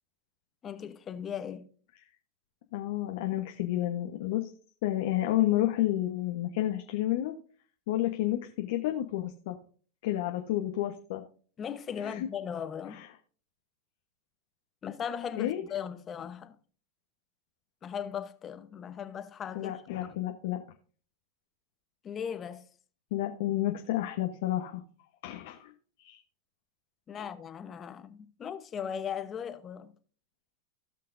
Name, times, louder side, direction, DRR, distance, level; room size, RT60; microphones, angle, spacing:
voice 1, 0.6-1.7 11.6-13.0 14.8-16.6 17.8-19.7 22.0-22.6 27.1-29.9, left 8 dB, 30° left, 1.0 m, -38 dB
voice 2, 2.7-4.5 4.8-7.3 7.9-9.6 10.0-11.2 12.0-12.2 12.9-13.0 15.4-15.6 19.5-20.6 23.1-24.8 25.2-25.7 26.0-26.2 27.1-27.2, left 14 dB, 65° left, 1.1 m, -30 dB
17.5 x 5.8 x 2.6 m
hypercardioid pair, 110°, 0 cm